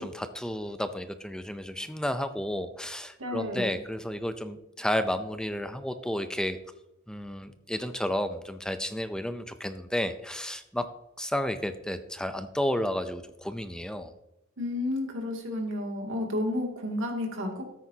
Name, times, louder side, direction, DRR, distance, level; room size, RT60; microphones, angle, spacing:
voice 1, 0.0-6.6 7.1-10.9 11.2-14.1, left 1 dB, 5° left, 9 dB, 0.5 m, -32 dB
voice 2, 3.2-3.8 14.6-17.6, left 1 dB, 65° right, 1 dB, 2.4 m, -31 dB
13.5 x 9.9 x 2.8 m, 0.87 s
head